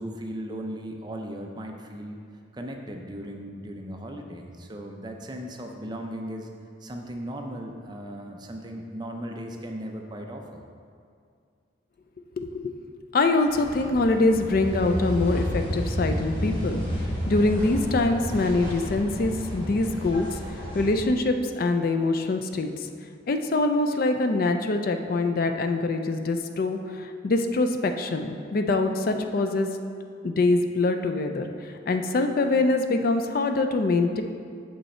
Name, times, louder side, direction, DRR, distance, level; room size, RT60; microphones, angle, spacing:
voice 1, 0.0-2.2 2.5-6.5 6.8-10.6, equal, 20° right, 2 dB, 0.5 m, -37 dB
voice 2, 12.4-12.7 13.1-16.8 17.3-20.4 20.7-22.9 23.3-29.7 30.2-31.5 31.9-34.2, left 2 dB, 50° left, 6 dB, 0.4 m, -24 dB
sound 1, 13.5-20.9, equal, 25° left, 1.6 m, -31 dB
6.8 x 5.4 x 4.3 m, 2.3 s
head